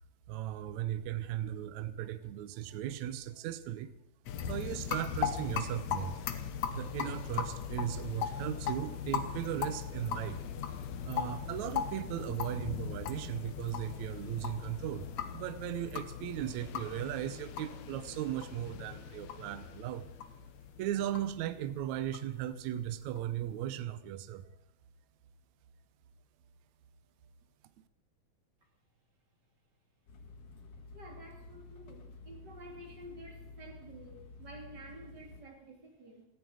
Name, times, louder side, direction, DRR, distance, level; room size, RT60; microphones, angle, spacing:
voice 1, 0.3-3.9 4.5-6.2 6.7-10.4 11.0-20.0 20.8-24.5, right 12 dB, 70° right, 12 dB, 1.9 m, -37 dB
sound 1, 4.3-23.5, left 8 dB, 65° left, 2.0 m, -39 dB
sound 2, 30.1-35.4, left 3 dB, 50° left, 2.2 m, -51 dB
voice 2, 30.9-36.2, right 1 dB, 35° right, 2 dB, 2.7 m, -51 dB
18.5 x 14.5 x 5.0 m, 0.76 s
omnidirectional pair, 4.0 m